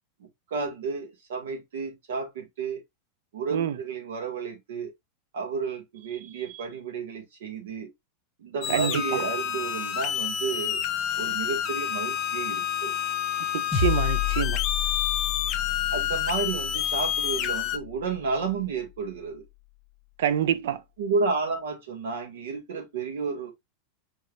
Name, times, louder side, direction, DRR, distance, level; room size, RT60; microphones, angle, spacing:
voice 1, 0.2-2.8 3.3-4.9 5.3-7.9 8.4-10.8 11.2-13.0 15.9-19.4 21.0-23.5, right 4 dB, 85° right, 1.8 m, -32 dB
sound 1, 8.6-17.8, left 10 dB, 30° left, 0.5 m, -29 dB
voice 2, 8.7-9.2 13.5-14.6 20.2-20.8, right 10 dB, 70° right, 0.5 m, -26 dB
sound 2, 13.7-18.3, left 9 dB, 5° right, 1.4 m, -31 dB
4.4 x 3.3 x 2.4 m
supercardioid pair, 170°, 0 cm